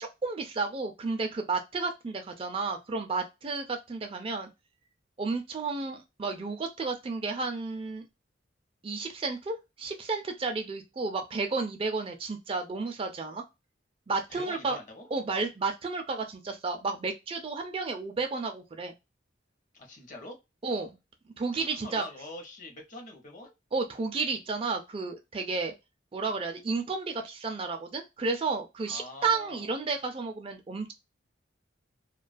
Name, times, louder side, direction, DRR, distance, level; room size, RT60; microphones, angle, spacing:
voice 1, 0.0-4.5 5.2-8.0 8.8-13.5 14.1-14.8 15.1-18.9 20.6-21.0 21.4-22.0 23.7-25.7 26.1-30.9, right 4 dB, 30° right, 0.3 m, -32 dB
voice 2, 14.3-15.1 19.7-20.4 21.6-23.5 28.9-29.8, left 2 dB, 40° left, 0.7 m, -44 dB
2.3 x 2.2 x 2.4 m
head